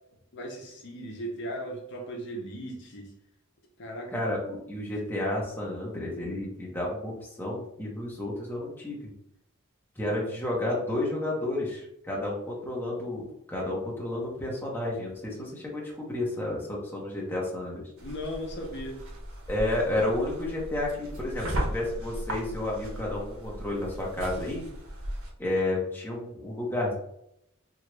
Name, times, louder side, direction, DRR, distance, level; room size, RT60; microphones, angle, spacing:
voice 1, 0.3-3.1 3.8-4.1 18.0-19.0, equal, 55° left, 0 dB, 0.6 m, -37 dB
voice 2, 4.1-9.1 10.0-17.9 19.5-24.6 25.4-26.9, left 1 dB, 10° left, -4 dB, 0.8 m, -31 dB
sound 1, 18.0-25.3, equal, 70° right, 0.7 m, -36 dB
2.9 x 2.4 x 3.1 m, 0.77 s
head